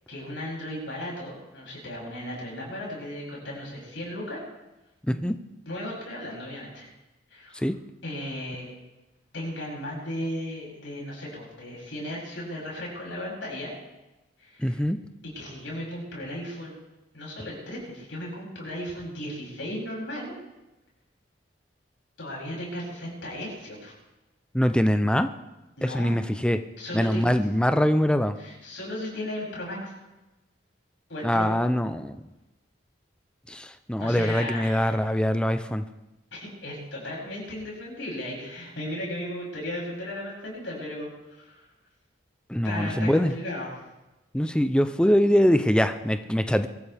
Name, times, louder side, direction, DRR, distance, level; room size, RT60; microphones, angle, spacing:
voice 1, 0.1-4.4 5.7-6.9 7.3-7.6 8.0-8.7 9.3-13.7 14.4-14.8 15.3-16.8 17.1-20.3 22.2-23.9 25.8-26.2 26.8-27.3 28.4-29.9 31.1-31.5 34.0-35.1 36.3-41.7 42.6-43.7, left 1 dB, 85° left, -4 dB, 7.6 m, -35 dB
voice 2, 5.1-5.4 7.5-7.8 14.6-15.0 24.5-25.3 25.8-26.6 26.9-28.4 31.2-32.2 33.5-35.8 42.5-43.3 44.3-46.7, equal, 5° left, 9 dB, 0.6 m, -23 dB
23.5 x 14.0 x 3.5 m, 1.0 s
head